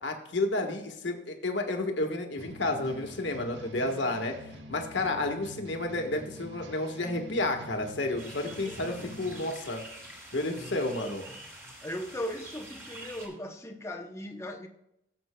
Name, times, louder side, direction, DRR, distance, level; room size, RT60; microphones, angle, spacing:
voice 1, 0.0-4.3 4.7-9.8 10.3-11.2, left 2 dB, 70° left, 1.4 m, -31 dB
sound 1, 2.4-9.5, equal, 65° right, 1.0 m, -46 dB
sound 2, 8.2-13.3, right 1 dB, 15° right, 2.5 m, -47 dB
voice 2, 8.5-9.2 10.5-11.2 11.5-14.7, left 1 dB, 15° left, 0.7 m, -39 dB
17.5 x 7.9 x 2.2 m
head